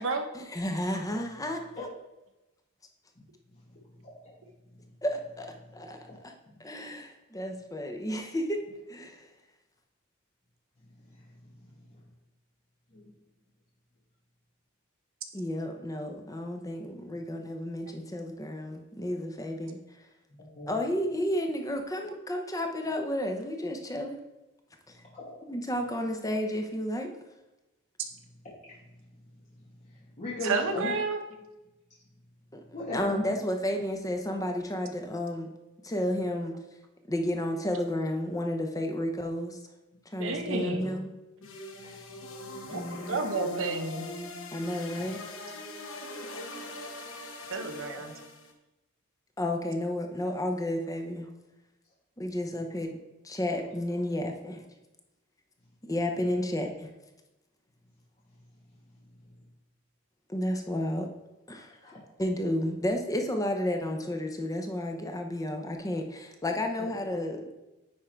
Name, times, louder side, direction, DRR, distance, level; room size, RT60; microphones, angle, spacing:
voice 1, 0.3-1.9 5.0-6.1 6.6-8.6 8.9-9.3 15.3-19.8 20.7-24.2 25.5-27.1 32.5-32.6 32.9-35.5 35.8-36.5 37.1-39.6 40.1-41.1 42.7-43.2 44.5-45.2 49.4-51.3 52.2-53.0 53.2-54.6 55.8-56.9 60.3-61.1 61.5-61.7 62.2-67.4, left 1 dB, 15° left, 4 dB, 0.7 m, -32 dB
voice 2, 20.3-20.7 25.1-25.3 29.8-30.9 32.7-33.4 40.2-40.3 40.6-40.8 44.9-45.1 47.9-48.0 61.8-62.0 66.8-66.9, left 1 dB, 35° left, -8 dB, 1.5 m, -38 dB
voice 3, 30.4-31.2 40.2-41.0 42.6-42.8 43.1-44.1 47.5-48.1, right 3 dB, 65° right, 5 dB, 0.9 m, -30 dB
sound 1, 41.4-48.5, left 2 dB, 65° left, 1.0 m, -42 dB
9.6 x 3.7 x 4.5 m, 1.0 s
head